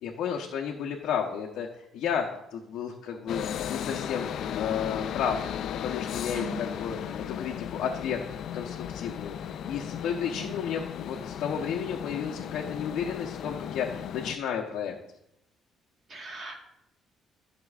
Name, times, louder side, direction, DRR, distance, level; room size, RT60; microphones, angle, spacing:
voice 1, 0.0-3.4 3.7-4.3 4.6-5.4 5.8-8.2 8.5-14.9, left 7 dB, 70° left, -1 dB, 0.8 m, -32 dB
sound 1, 3.3-14.4, left 9 dB, 55° left, 0.3 m, -35 dB
voice 2, 6.3-6.6 10.3-10.5 16.1-16.6, right 2 dB, 35° right, 2 dB, 1.5 m, -39 dB
13.0 x 5.9 x 2.4 m, 0.82 s
cardioid pair, 160°, 0 cm